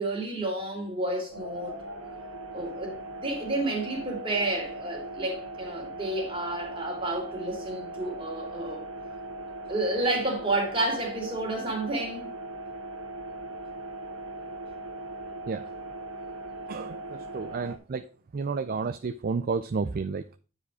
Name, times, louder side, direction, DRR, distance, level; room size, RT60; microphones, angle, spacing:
voice 1, 0.0-1.8 2.5-8.8 9.7-12.3, right 2 dB, 25° right, 2.7 m, -30 dB
sound 1, 1.3-17.8, right 2 dB, 85° right, 1.6 m, -39 dB
voice 2, 16.7-18.0 18.3-20.4, right 4 dB, 45° right, 0.4 m, -31 dB
9.3 x 5.0 x 4.8 m
head